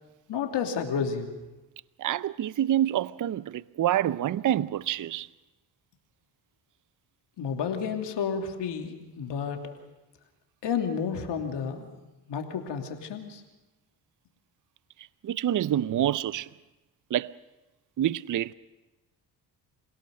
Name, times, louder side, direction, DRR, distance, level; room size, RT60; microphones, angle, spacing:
voice 1, 0.3-1.3 7.4-9.7 10.6-11.9 12.3-13.4, left 6 dB, 70° left, 3.0 m, -31 dB
voice 2, 2.0-5.3 15.0-16.5 17.1-17.3 18.0-18.5, right 12 dB, 45° right, 0.6 m, -27 dB
27.5 x 17.5 x 6.5 m
supercardioid pair, 65°, 43 cm